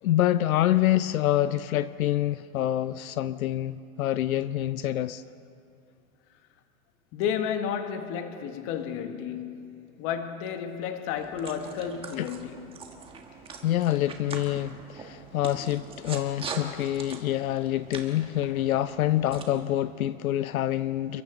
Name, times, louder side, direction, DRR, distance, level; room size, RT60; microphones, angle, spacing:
voice 1, 0.0-5.2 12.2-12.3 13.6-21.2, left 13 dB, 80° left, 0.7 m, -26 dB
voice 2, 7.1-12.7, left 8 dB, 30° left, 1.6 m, -32 dB
sound 1, 11.2-19.4, right 5 dB, 15° right, 1.5 m, -42 dB
29.0 x 23.5 x 3.9 m
hypercardioid pair, 150°, 42 cm